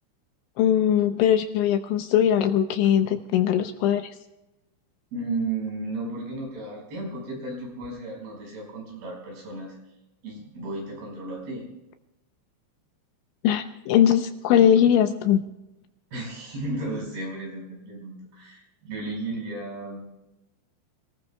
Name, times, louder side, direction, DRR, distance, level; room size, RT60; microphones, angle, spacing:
voice 1, 0.6-4.1 13.4-15.4, left 9 dB, 80° left, 7 dB, 2.9 m, -20 dB
voice 2, 5.1-9.8 10.2-11.6 16.1-20.0, right 2 dB, 50° right, -1 dB, 6.9 m, -34 dB
27.5 x 19.5 x 2.3 m, 0.94 s
omnidirectional pair, 5.7 m